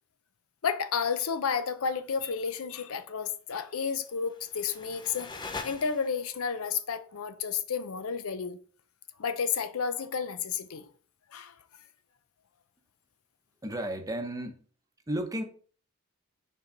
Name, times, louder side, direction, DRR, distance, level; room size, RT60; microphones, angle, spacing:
voice 1, 0.6-5.3 5.6-8.6 9.2-10.9 11.3-11.5, left 6 dB, 70° left, 0.6 m, -31 dB
sound 1, 4.0-6.4, left 4 dB, 20° left, 0.6 m, -42 dB
voice 2, 13.6-14.6 15.1-15.4, right 1 dB, 15° right, 0.8 m, -33 dB
6.0 x 4.5 x 4.0 m
head